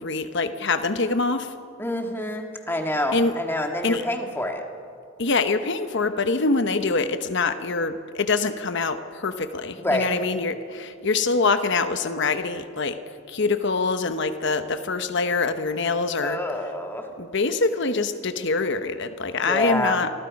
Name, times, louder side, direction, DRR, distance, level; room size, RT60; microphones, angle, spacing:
voice 1, 0.0-1.5 3.1-3.4 3.8-4.0 5.2-13.0 13.3-16.4 17.2-20.1, left 3 dB, 60° left, 10 dB, 1.0 m, -24 dB
voice 2, 1.8-4.6 9.8-10.1 16.2-17.1 19.5-20.0, left 1 dB, 10° left, 3 dB, 1.9 m, -27 dB
27.5 x 20.5 x 5.3 m, 2.3 s
head